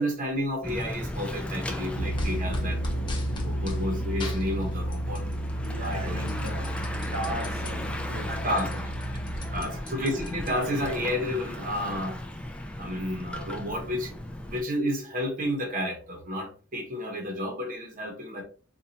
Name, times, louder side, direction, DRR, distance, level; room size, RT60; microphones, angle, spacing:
voice 1, 0.0-2.8 3.4-5.2 5.8-6.2 8.3-8.7 9.5-12.2 12.8-14.2 14.5-18.4, equal, 40° right, 2 dB, 0.8 m, -31 dB
Bicycle / Mechanisms, 0.6-14.6, left 1 dB, 5° left, 0.3 m, -36 dB
sound 1, 1.9-9.6, right 1 dB, 70° left, 0.7 m, -32 dB
sound 2, 2.2-3.8 4.2-5.3 5.6-7.7 8.1-8.2 8.5-10.9, left 1 dB, 25° left, 0.7 m, -38 dB
voice 2, 5.6-6.9 7.1-8.8 9.3-9.8, right 1 dB, 80° right, 3 dB, 1.0 m, -38 dB
4.1 x 2.2 x 2.7 m, 0.39 s
head